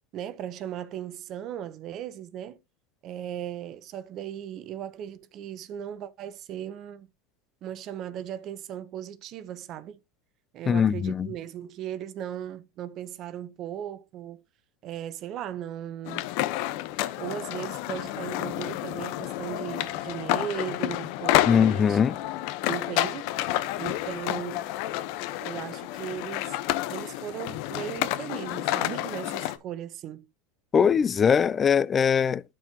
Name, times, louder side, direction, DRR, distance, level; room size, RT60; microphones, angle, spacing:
voice 1, 0.1-2.6 3.0-7.1 7.6-10.0 10.5-14.4 14.8-16.3 17.2-22.0 22.7-23.3 23.8-24.7 25.4-26.6 26.9-30.3, right 10 dB, 45° right, 0.9 m, -37 dB
voice 2, 10.7-11.3 21.5-22.2 30.7-32.4, left 7 dB, 25° left, 0.4 m, -21 dB
sound 1, 16.0-29.6, left 15 dB, 65° left, 0.9 m, -30 dB
13.0 x 4.7 x 2.9 m
supercardioid pair, 110°, 0 cm